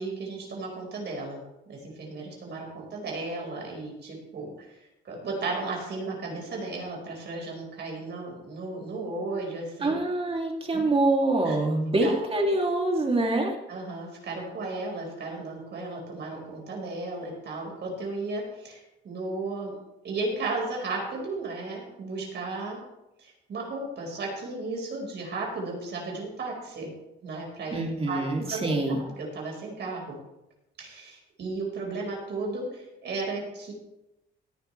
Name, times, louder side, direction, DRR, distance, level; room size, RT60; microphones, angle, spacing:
voice 1, 0.0-10.0 10.7-10.8 11.5-11.6 12.0-12.1 13.7-22.8 23.2-26.9 27.2-28.2 28.5-30.2 30.8-33.7, right 3 dB, 60° right, -1 dB, 5.2 m, -35 dB
voice 2, 9.8-13.5 27.7-29.0, right 2 dB, 30° right, 1 dB, 2.9 m, -25 dB
18.0 x 10.0 x 3.4 m, 0.91 s
cardioid pair, 90°, 20 cm